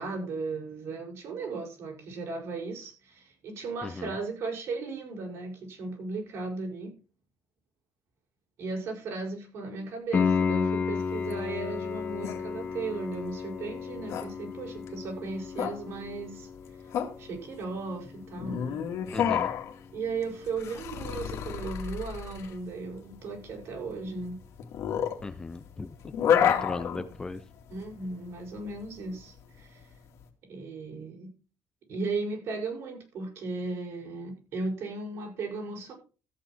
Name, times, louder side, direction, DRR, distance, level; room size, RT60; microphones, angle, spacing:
voice 1, 0.0-6.9 8.6-16.5 17.2-18.8 19.9-24.4 26.3-26.6 27.7-29.9 30.5-31.3 31.9-35.9, right 3 dB, 60° right, 0 dB, 6.1 m, -36 dB
voice 2, 3.8-4.2 19.1-19.5 25.2-25.9 26.4-27.4, left 3 dB, 15° left, 10 dB, 0.7 m, -36 dB
Piano, 10.1-20.8 24.1-24.2, left 5 dB, 30° left, 2.0 m, -34 dB
sound 1, 11.0-30.2, left 9 dB, 65° left, 2.3 m, -31 dB
14.0 x 8.6 x 4.5 m, 0.35 s
cardioid pair, 165°, 5 cm